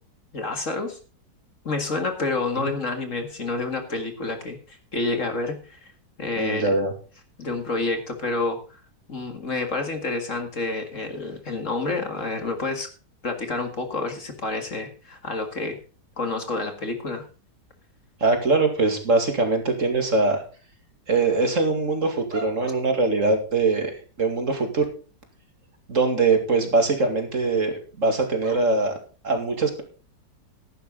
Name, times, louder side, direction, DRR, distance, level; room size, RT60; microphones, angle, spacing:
voice 1, 0.3-1.0 1.6-5.9 6.2-6.7 7.4-8.8 9.1-12.9 13.2-15.8 16.2-17.2, left 3 dB, 45° left, 6 dB, 2.3 m, -29 dB
voice 2, 6.4-6.9 18.2-20.4 21.1-24.8 25.9-28.9 29.2-29.8, right 3 dB, 45° right, 5 dB, 2.7 m, -22 dB
14.5 x 11.0 x 3.9 m, 0.36 s
omnidirectional pair, 1.9 m